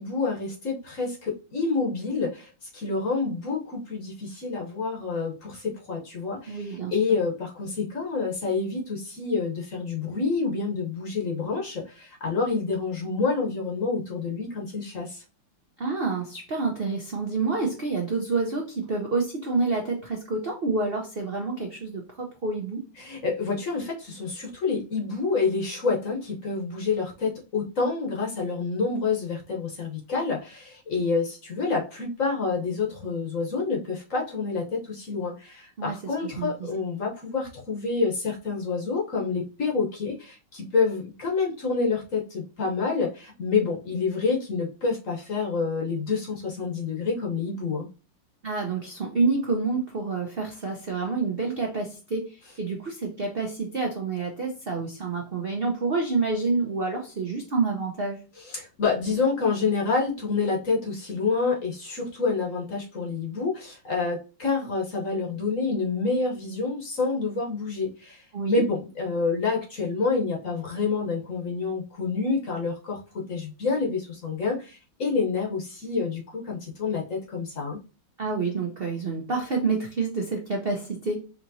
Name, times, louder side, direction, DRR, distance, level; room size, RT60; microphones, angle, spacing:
voice 1, 0.0-15.2 23.0-47.9 58.4-77.8, left 4 dB, 50° left, 0 dB, 1.1 m, -28 dB
voice 2, 6.5-7.0 15.8-22.8 35.8-36.0 36.2-36.5 48.4-58.2 68.3-68.6 78.2-81.2, right 4 dB, 80° right, 0 dB, 0.5 m, -28 dB
5.0 x 3.0 x 2.6 m, 0.32 s
omnidirectional pair, 2.3 m